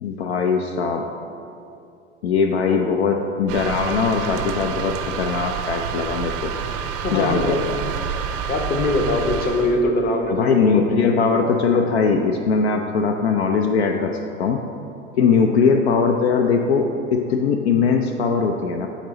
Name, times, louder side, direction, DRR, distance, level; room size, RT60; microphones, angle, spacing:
voice 1, 0.0-1.1 2.2-6.5 7.1-7.6 10.3-14.6 15.2-18.9, left 5 dB, 65° left, 5 dB, 0.5 m, -20 dB
sound 1, 3.5-9.8, right 7 dB, 50° right, 0.5 m, -28 dB
voice 2, 7.0-7.6 8.5-11.3 15.2-15.4, left 1 dB, 25° left, 3 dB, 0.8 m, -23 dB
11.5 x 4.0 x 2.9 m, 2.6 s
figure-of-eight pair, 75°, 34 cm